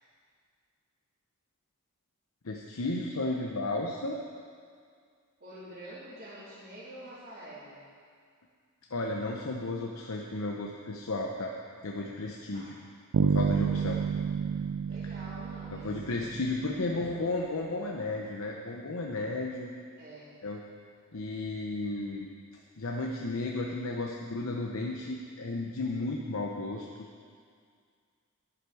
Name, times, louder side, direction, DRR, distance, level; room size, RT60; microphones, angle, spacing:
voice 1, 2.4-4.2 8.9-11.5 11.8-12.7 13.2-14.0 15.7-19.7 20.4-20.6 21.1-22.3 22.8-27.1, left 2 dB, 70° left, 0 dB, 0.8 m, -33 dB
voice 2, 5.4-7.8 12.5-12.7 13.6-14.0 14.9-15.9 16.7-17.4 20.0-20.3, right 1 dB, 45° right, -14 dB, 3.1 m, -47 dB
Bass guitar, 13.1-16.9, right 6 dB, 80° right, 0.4 m, -30 dB
11.5 x 10.0 x 4.8 m, 2.1 s
head